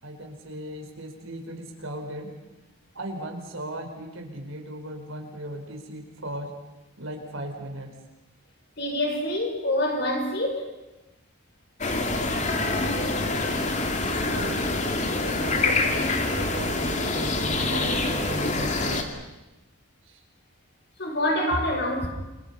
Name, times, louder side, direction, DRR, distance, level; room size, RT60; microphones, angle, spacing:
voice 1, 0.0-2.3 2.9-6.5 7.0-7.9 14.3-14.6 15.1-16.1 16.3-19.0 20.1-20.2, right 1 dB, 75° right, 4.9 m, -37 dB
voice 2, 8.8-10.7 21.0-22.1, left 1 dB, 50° left, 5.6 m, -26 dB
sound 1, 11.8-19.0, left 2 dB, 35° left, 2.3 m, -26 dB
29.5 x 24.5 x 5.6 m
head